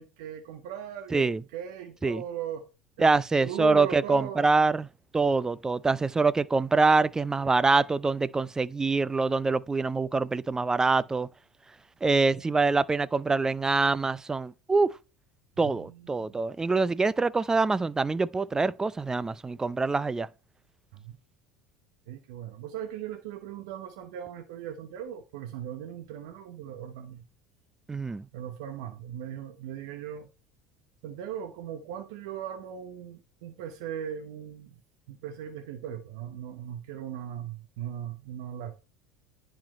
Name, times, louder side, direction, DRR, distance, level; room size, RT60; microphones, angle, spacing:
voice 1, 0.0-2.7 3.0-4.5 15.6-16.4 20.9-21.2 22.1-27.2 28.3-30.3 31.0-34.7 35.1-38.8, right 10 dB, 70° right, 1.0 m, -39 dB
voice 2, 3.0-4.9 5.1-11.3 12.0-14.9 15.6-20.3 27.9-28.2, right 3 dB, 15° right, 0.5 m, -25 dB
10.5 x 4.4 x 3.1 m
hypercardioid pair, 75°, 4 cm